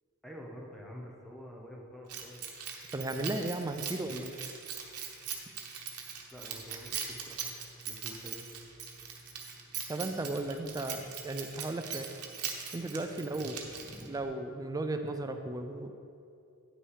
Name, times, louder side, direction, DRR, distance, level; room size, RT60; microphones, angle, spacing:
voice 1, 0.2-2.4 6.3-8.5 13.4-14.1, equal, ahead, -2 dB, 0.9 m, -48 dB
Keys jangling, 2.1-14.2, right 7 dB, 90° right, 1.1 m, -41 dB
voice 2, 2.9-4.3 9.9-12.1 12.7-13.6 14.1-15.9, right 2 dB, 15° right, 6 dB, 0.4 m, -35 dB
9.7 x 6.1 x 4.8 m, 2.5 s
head